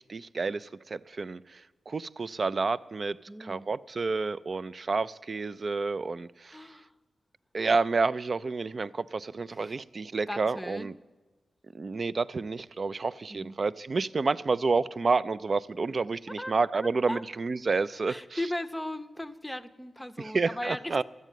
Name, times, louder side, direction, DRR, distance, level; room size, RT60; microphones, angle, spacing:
voice 1, 0.0-6.6 7.5-10.9 11.7-18.4 20.2-21.0, right 4 dB, 50° right, 15 dB, 0.4 m, -29 dB
voice 2, 3.3-3.6 6.5-6.9 9.5-9.8 10.3-10.9 13.3-13.5 16.3-16.5 16.8-17.2 18.1-21.0, left 1 dB, 5° left, 9 dB, 0.7 m, -37 dB
13.0 x 8.2 x 9.1 m, 1.3 s
cardioid pair, 75°, 0 cm